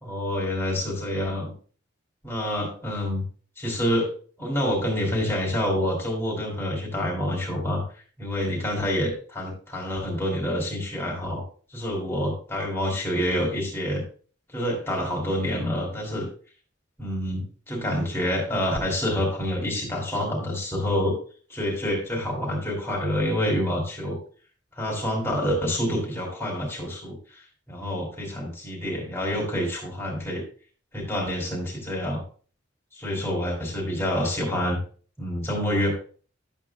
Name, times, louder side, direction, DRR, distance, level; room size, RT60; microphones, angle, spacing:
voice 1, 0.0-1.5 2.2-3.2 3.6-4.1 4.4-7.8 8.2-11.4 11.7-14.0 14.5-16.3 17.0-21.2 21.5-24.2 24.8-27.4 27.7-30.4 30.9-32.2 32.9-34.8 35.2-35.9, equal, 15° left, -2 dB, 2.9 m, -27 dB
11.0 x 8.1 x 2.3 m, 0.41 s
head